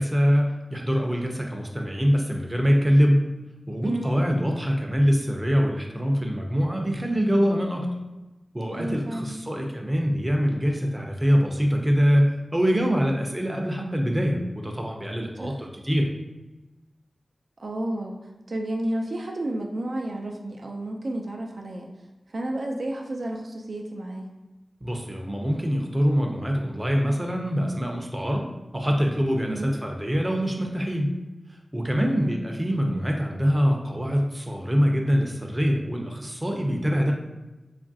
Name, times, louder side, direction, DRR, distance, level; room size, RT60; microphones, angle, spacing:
voice 1, 0.0-3.2 3.7-7.9 8.5-16.1 24.8-28.4 28.7-31.1 31.7-37.1, equal, 15° right, 1 dB, 0.5 m, -24 dB
voice 2, 3.8-4.2 8.7-9.3 15.4-15.6 17.6-18.2 18.5-21.9 22.3-24.3 29.5-29.7 32.0-32.4, right 1 dB, 75° right, 1 dB, 0.3 m, -31 dB
2.9 x 2.4 x 2.6 m, 1.1 s
wide cardioid pair, 55°, 0 cm